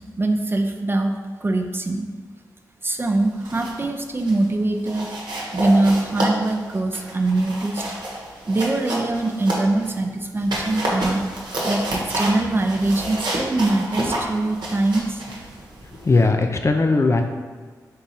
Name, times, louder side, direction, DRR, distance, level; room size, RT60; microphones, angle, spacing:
voice 1, 0.2-2.1 2.8-5.1 5.5-7.8 8.5-11.3 11.6-15.2, right 2 dB, 30° right, 4 dB, 0.5 m, -22 dB
sound 1, 3.2-3.9 4.2-4.5 4.9-10.0 10.4-16.3, right 1 dB, 70° right, 1.0 m, -29 dB
voice 2, 15.8-17.2, left 3 dB, 35° left, 5 dB, 0.4 m, -19 dB
3.7 x 2.9 x 4.1 m, 1.5 s
supercardioid pair, 40°, 8 cm